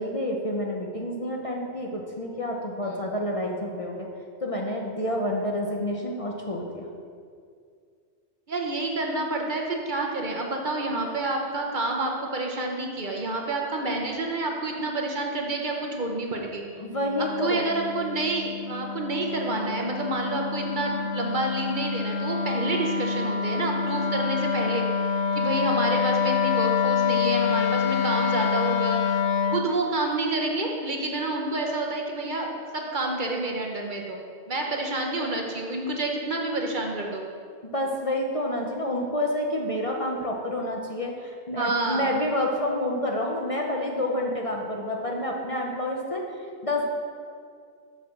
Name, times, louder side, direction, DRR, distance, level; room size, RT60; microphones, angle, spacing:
voice 1, 0.0-4.1 4.4-6.8 16.8-17.7 37.6-46.2 46.6-46.8, left 1 dB, 35° left, 0 dB, 0.8 m, -28 dB
voice 2, 8.5-16.6 17.2-29.2 29.5-37.2 41.6-42.1, right 2 dB, 50° right, 1 dB, 1.0 m, -29 dB
Wind instrument woodwind instrument, 16.8-29.7, left 6 dB, 85° left, 0.9 m, -27 dB
7.2 x 5.5 x 6.5 m, 2.2 s
omnidirectional pair, 1.1 m